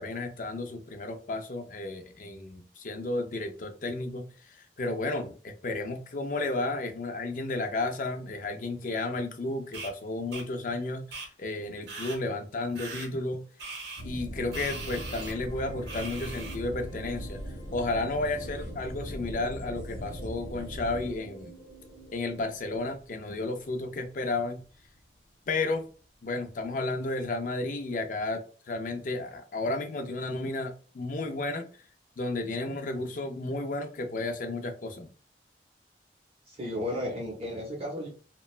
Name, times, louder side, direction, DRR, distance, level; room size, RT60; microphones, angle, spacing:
voice 1, 0.0-13.4 14.0-17.4 17.7-21.5 22.1-24.6 25.5-25.9 26.2-31.7 32.2-35.1, left 2 dB, 45° left, 6 dB, 0.4 m, -32 dB
sound 1, 9.7-9.9 10.3-10.4 11.1-11.3 11.9-12.2 12.8-13.1 13.6-14.0 14.5-15.3 15.9-16.6, right 3 dB, 80° right, 0.7 m, -40 dB
sound 2, 14.0-24.9 25.1-25.2, equal, 90° left, 1.0 m, -41 dB
sound 3, 14.4-22.4, right 2 dB, 15° left, 0.8 m, -50 dB
voice 2, 36.5-38.1, left 1 dB, 35° right, -1 dB, 0.5 m, -34 dB
3.0 x 2.1 x 2.3 m, 0.39 s
head